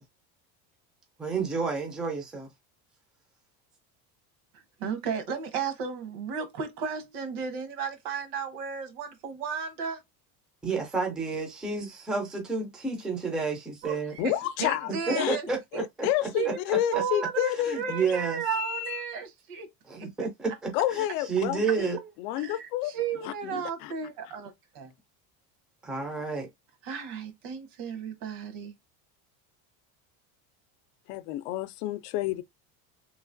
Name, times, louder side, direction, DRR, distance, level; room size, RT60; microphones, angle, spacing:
voice 1, 1.2-2.4 10.6-14.1 14.9-16.1 17.6-18.4 19.9-22.0 25.8-26.5, right 4 dB, ahead, 0.3 m, -30 dB
voice 2, 4.8-10.0 13.8-14.3 14.6-15.5 16.3-16.6 16.9-19.7 19.9-20.3 22.4-24.9 26.8-28.7, right 6 dB, 75° right, 1.2 m, -34 dB
voice 3, 14.2-15.4 15.7-17.8 18.5-19.0 20.7-22.9 23.2-23.9 31.1-32.4, left 13 dB, 80° left, 0.5 m, -30 dB
3.1 x 2.9 x 2.5 m
cardioid pair, 160°, 44 cm